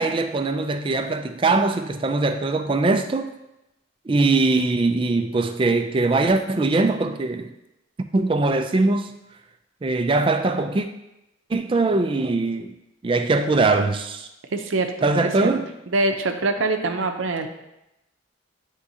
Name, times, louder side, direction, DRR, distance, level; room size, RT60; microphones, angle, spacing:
voice 1, 0.0-3.3 4.1-7.5 8.1-9.1 9.8-10.9 11.5-12.7 13.0-14.3 15.0-15.6, right 3 dB, 25° right, 0.3 m, -21 dB
voice 2, 14.5-15.5 15.9-17.5, right 2 dB, 75° right, 0.6 m, -24 dB
9.5 x 3.6 x 2.7 m
head